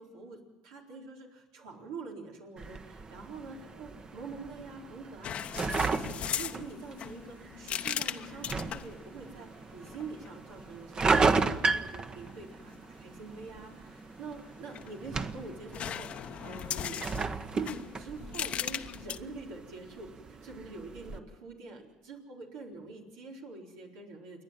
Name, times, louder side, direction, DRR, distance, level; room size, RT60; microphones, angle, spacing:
voice 1, 0.0-17.3 17.5-24.4, right 4 dB, 85° right, -1 dB, 4.2 m, -45 dB
sound 1, 2.6-21.2, right 4 dB, 35° right, 1.2 m, -35 dB
sound 2, 5.2-9.0 9.9-10.3 14.5-15.3 15.7-19.2, left 9 dB, 55° left, 0.8 m, -38 dB
28.5 x 11.0 x 9.0 m, 1.3 s
supercardioid pair, 75°, 2 cm